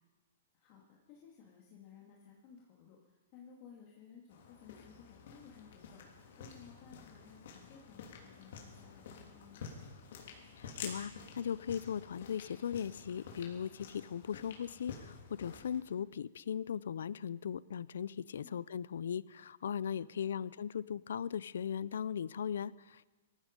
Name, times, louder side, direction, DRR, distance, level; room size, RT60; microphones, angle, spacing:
voice 1, 0.5-9.6 20.0-20.1, left 7 dB, 40° left, -2 dB, 2.3 m, -58 dB
sound 1, 4.3-15.8, left 6 dB, 65° left, 3.1 m, -50 dB
voice 2, 10.6-23.1, left 8 dB, 80° left, 21 dB, 0.5 m, -38 dB
18.5 x 14.5 x 5.3 m, 1.2 s
hypercardioid pair, 150°, 0 cm